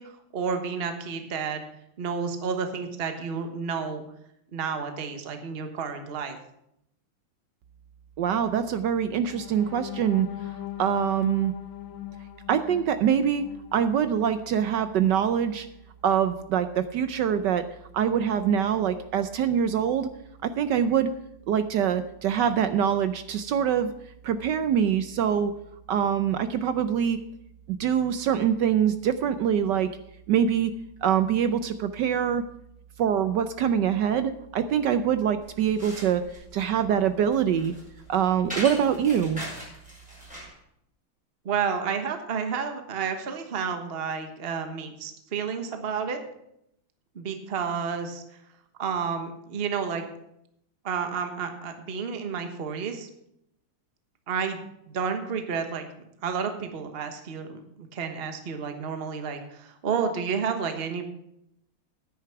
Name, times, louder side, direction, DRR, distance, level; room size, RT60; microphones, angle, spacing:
voice 1, 0.0-1.6 2.0-4.0 4.5-6.4 41.4-46.2 47.1-48.2 48.8-50.0 50.8-53.1 54.3-55.9 56.2-61.0, right 6 dB, 35° right, 6 dB, 1.2 m, -31 dB
voice 2, 8.2-10.3 10.8-11.5 12.5-13.5 13.7-15.7 16.0-17.6 17.9-20.1 20.4-21.1 21.5-23.9 24.2-25.5 25.9-27.2 27.7-29.9 30.3-30.7 31.0-32.4 33.0-36.2 36.5-37.7 38.1-39.4, right 8 dB, 70° right, 11 dB, 1.1 m, -24 dB
sound 1, 9.2-15.2 15.6-15.8 16.2-16.4, left 14 dB, 65° left, 1.9 m, -40 dB
sound 2, 35.4-40.6, equal, 5° right, 6.0 m, -40 dB
9.9 x 9.5 x 5.8 m, 0.77 s
omnidirectional pair, 2.4 m